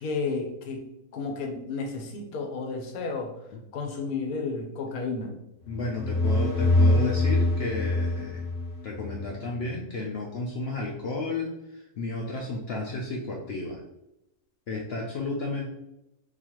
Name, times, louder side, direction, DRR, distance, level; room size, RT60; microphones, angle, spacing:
voice 1, 0.0-3.3 3.7-5.4, left 4 dB, 85° left, 3 dB, 1.1 m, -32 dB
voice 2, 5.7-8.4 8.8-13.8 14.7-15.7, left 2 dB, 65° left, -1 dB, 0.6 m, -32 dB
sound 1, 5.7-9.3, left 2 dB, 35° left, 0.9 m, -24 dB
4.0 x 2.7 x 2.9 m, 0.86 s
omnidirectional pair, 1.5 m